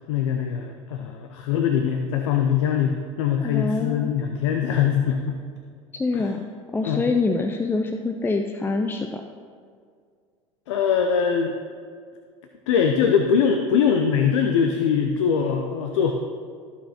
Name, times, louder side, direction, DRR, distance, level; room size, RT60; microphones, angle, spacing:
voice 1, 0.1-5.4 6.1-6.3 6.8-7.0 10.7-11.5 12.7-16.1, left 7 dB, 70° left, 5 dB, 0.6 m, -22 dB
voice 2, 3.4-4.1 5.9-9.2, left 3 dB, 15° left, 6 dB, 0.5 m, -25 dB
15.5 x 5.8 x 2.9 m, 2.1 s
hypercardioid pair, 75°, 16 cm